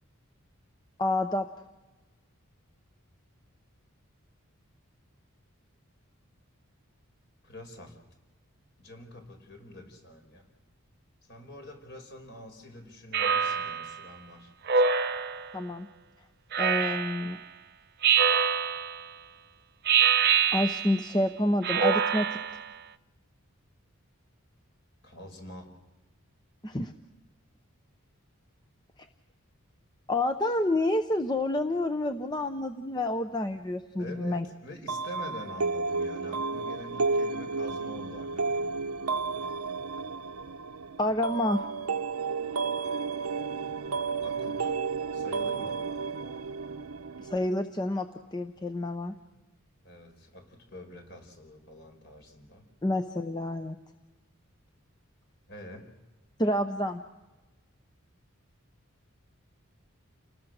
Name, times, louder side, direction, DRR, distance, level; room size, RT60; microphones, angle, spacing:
voice 1, 1.0-1.5 15.5-15.9 16.6-17.4 20.5-22.3 26.6-26.9 30.1-34.4 41.0-41.6 47.2-48.1 48.3-49.1 52.8-53.8 56.4-57.0, left 1 dB, 20° left, 7 dB, 0.7 m, -28 dB
voice 2, 7.4-8.0 8.8-10.5 11.3-14.5 25.0-25.7 34.0-38.7 44.2-44.8 45.1-45.8 49.8-52.7 55.5-55.9, left 1 dB, 50° left, 5 dB, 4.9 m, -45 dB
Speech synthesizer, 13.1-13.9 14.7-15.5 16.5-17.3 18.0-19.0 19.8-21.1 21.6-22.7, right 6 dB, 45° right, 0.7 m, -25 dB
sound 1, 34.9-47.5, right 4 dB, 90° right, 0.9 m, -32 dB
29.5 x 19.5 x 6.5 m, 1.2 s
head